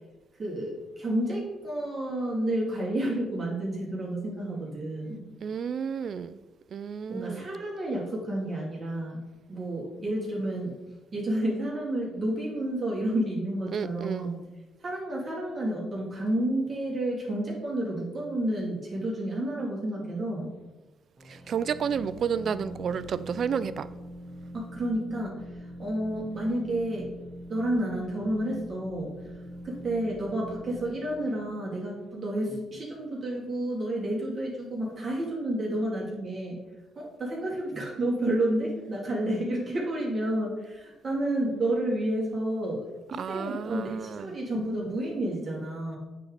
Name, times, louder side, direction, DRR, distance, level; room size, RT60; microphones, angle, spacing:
voice 1, 0.4-5.2 7.1-9.2 9.5-10.7 11.1-14.4 14.8-20.5 24.5-25.4 25.8-27.1 27.5-29.1 29.6-36.6 37.0-42.8 43.1-46.0, right 1 dB, 35° right, -3 dB, 2.4 m, -30 dB
voice 2, 5.4-6.4 6.7-7.5 13.7-14.3 21.2-23.9 43.1-44.3, right 7 dB, 55° right, 15 dB, 0.4 m, -31 dB
sound 1, 21.2-32.7, equal, 10° right, 2.6 m, -43 dB
8.4 x 3.9 x 4.9 m, 1.1 s
cardioid pair, 90°, 0 cm